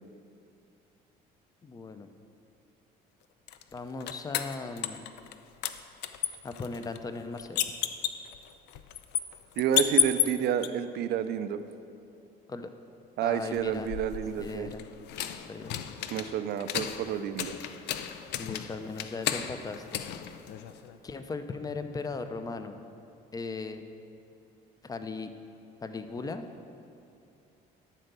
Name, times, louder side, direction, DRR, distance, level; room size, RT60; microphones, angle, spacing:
voice 1, 1.6-2.1 3.7-5.1 6.4-7.6 12.5-12.7 13.2-13.9 14.4-14.8 15.4-15.8 18.4-20.0 21.0-22.8 23.3-23.8 24.8-25.3 25.8-26.5, left 4 dB, 20° left, 9 dB, 0.6 m, -37 dB
sound 1, 3.5-5.4 5.6-10.7 13.5-21.0, left 11 dB, 80° left, 0.5 m, -33 dB
voice 2, 9.6-11.6 13.2-14.7 16.1-17.5, right 9 dB, 70° right, 11 dB, 0.5 m, -30 dB
11.5 x 4.5 x 6.8 m, 2.6 s
cardioid pair, 110°, 17 cm